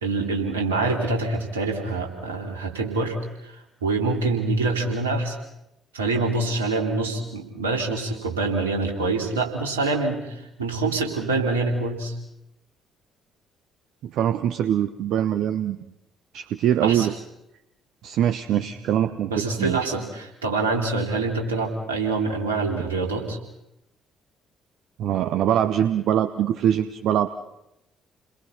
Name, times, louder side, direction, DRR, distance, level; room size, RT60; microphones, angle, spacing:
voice 1, 0.0-5.4 5.9-12.1 16.8-17.1 18.5-18.6 19.1-23.4, right 3 dB, 80° right, 2 dB, 3.2 m, -25 dB
voice 2, 14.0-15.9 16.3-17.2 18.0-19.8 25.0-27.3, right 10 dB, 60° right, 10 dB, 0.9 m, -23 dB
30.0 x 22.0 x 5.8 m, 0.87 s
figure-of-eight pair, 45°, 0 cm